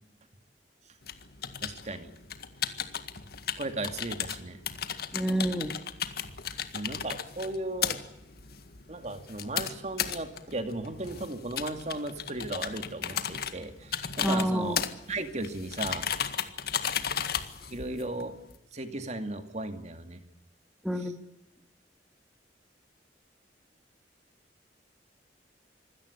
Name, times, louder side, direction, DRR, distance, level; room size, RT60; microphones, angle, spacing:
sound 1, 1.0-18.6, left 8 dB, 60° left, 1.9 m, -35 dB
voice 1, 1.6-2.1 3.6-4.6 6.7-8.0 8.9-16.1 17.7-18.3 18.7-20.2 20.9-21.1, right 2 dB, 40° right, 8 dB, 2.3 m, -36 dB
voice 2, 5.1-5.7 14.2-14.8 20.8-21.1, right 1 dB, ahead, 6 dB, 2.0 m, -28 dB
26.0 x 17.0 x 9.9 m, 0.87 s
head